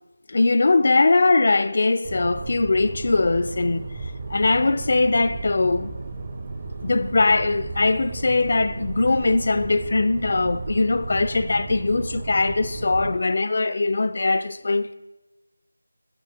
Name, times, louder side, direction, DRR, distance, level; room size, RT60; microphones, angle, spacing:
voice 1, 0.3-3.9 4.3-5.9 6.8-14.9, left 3 dB, 40° left, 0.4 m, -21 dB
sound 1, 2.0-13.2, right 3 dB, 25° right, 0.7 m, -34 dB
8.9 x 7.6 x 4.8 m
figure-of-eight pair, 165°, 0 cm